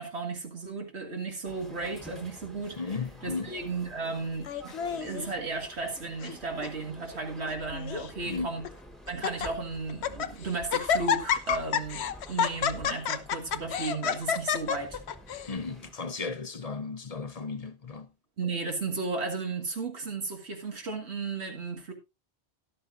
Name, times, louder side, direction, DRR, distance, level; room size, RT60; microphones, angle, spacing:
voice 1, 0.0-2.8 3.2-8.7 9.1-15.0 18.4-21.9, right 3 dB, 85° right, 2.2 m, -34 dB
sound 1, 1.4-15.9, equal, ahead, 1.3 m, -49 dB
voice 2, 2.8-3.5 8.2-8.5 15.5-18.1, left 4 dB, 40° left, 0.8 m, -35 dB
Laughter, 4.5-5.3 6.0-6.4 6.6-6.7 7.5-8.1 8.6-8.7 9.1-9.5 9.9-10.3 10.7-15.5, left 7 dB, 80° left, 1.0 m, -29 dB
13.0 x 11.5 x 2.6 m
omnidirectional pair, 1.1 m